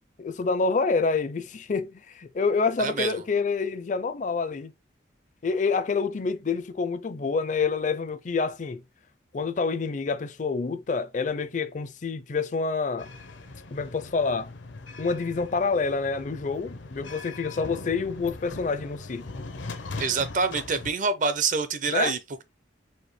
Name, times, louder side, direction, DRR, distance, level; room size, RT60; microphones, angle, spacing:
voice 1, 0.2-4.7 5.4-8.8 9.3-13.1 13.7-14.5 15.0-19.3 21.9-22.1, left 4 dB, 40° left, 0.4 m, -27 dB
voice 2, 2.8-3.2 20.0-22.4, right 5 dB, 45° right, 0.6 m, -26 dB
sound 1, 13.0-20.9, left 3 dB, 80° left, 0.7 m, -40 dB
4.4 x 2.7 x 3.2 m
head